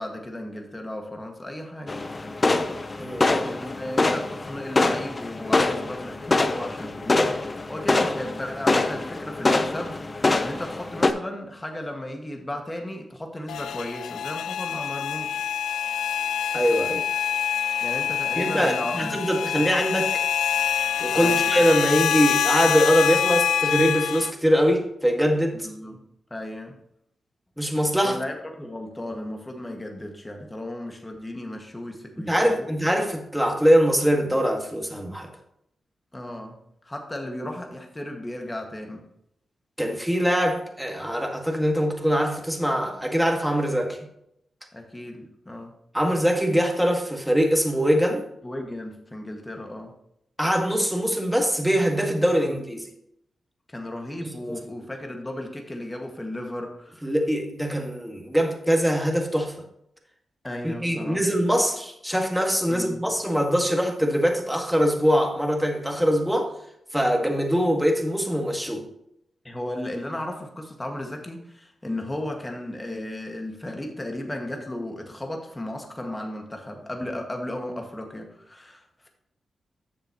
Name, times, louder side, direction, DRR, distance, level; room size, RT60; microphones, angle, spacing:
voice 1, 0.0-2.0 3.3-7.4 7.7-15.4 17.8-19.3 19.5-19.8 21.1-21.4 25.6-26.0 26.3-26.8 28.0-32.7 36.1-36.6 36.8-39.0 44.7-45.7 48.4-49.9 52.4-52.6 53.7-57.1 60.4-61.2 62.7-63.0 69.4-79.1, left 1 dB, 20° left, 2 dB, 1.9 m, -35 dB
sound 1, 1.9-11.1, left 2 dB, 35° left, 0.8 m, -24 dB
voice 2, 3.0-3.3 16.5-17.0 18.4-20.2 21.0-25.7 27.6-28.2 32.3-35.3 39.8-44.0 45.9-48.2 50.4-52.9 54.2-54.5 57.0-59.5 60.6-66.5 66.9-68.8, equal, 5° right, 2 dB, 1.9 m, -23 dB
sound 2, 13.5-24.3, left 9 dB, 90° left, 0.3 m, -25 dB
9.9 x 6.9 x 3.0 m, 0.75 s
supercardioid pair, 50°, 0 cm